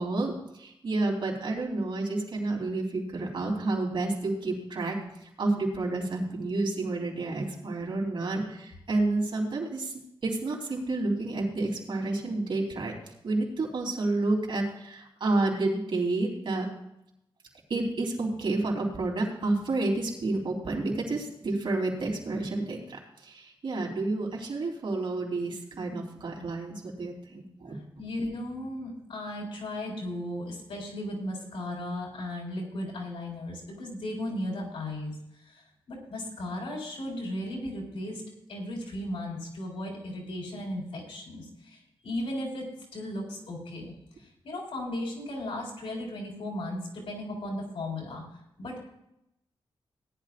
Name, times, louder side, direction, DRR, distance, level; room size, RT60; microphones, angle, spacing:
voice 1, 0.0-5.0 5.4-9.9 10.2-12.9 13.2-16.7 17.7-27.7, right 2 dB, 60° right, -1 dB, 3.6 m, -30 dB
voice 2, 28.0-35.6 35.9-38.2 38.5-43.9 44.2-48.2 48.6-48.9, left 1 dB, 85° left, -1 dB, 4.6 m, -36 dB
18.5 x 11.0 x 2.5 m, 0.81 s
wide cardioid pair, 125°, 9 cm